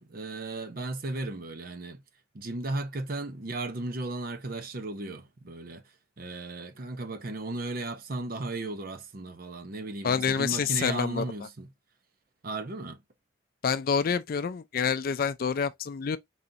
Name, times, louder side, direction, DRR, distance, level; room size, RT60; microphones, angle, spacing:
voice 1, 0.0-2.0 2.3-5.8 6.2-11.7 12.4-13.0, right 2 dB, 50° right, 0.7 m, -35 dB
voice 2, 10.0-11.2 13.6-16.2, left 6 dB, 50° left, 0.4 m, -27 dB
4.1 x 3.8 x 2.7 m
head